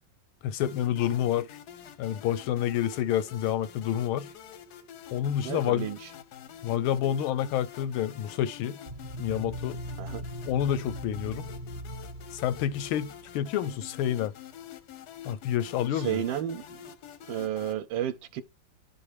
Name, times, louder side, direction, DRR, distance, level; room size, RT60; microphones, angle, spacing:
voice 1, 0.4-1.5 2.0-4.3 5.1-5.9 6.6-8.8 9.2-9.8 10.5-11.5 12.3-14.3 15.2-16.2, left 11 dB, 90° left, 1.4 m, -28 dB
sound 1, 0.6-17.7, left 8 dB, 70° left, 1.0 m, -47 dB
voice 2, 5.4-6.1 10.0-10.2 15.9-16.8 17.3-18.4, right 11 dB, 75° right, 1.2 m, -32 dB
sound 2, 8.9-13.5, equal, 40° right, 0.7 m, -40 dB
11.5 x 4.0 x 3.3 m
omnidirectional pair, 2.3 m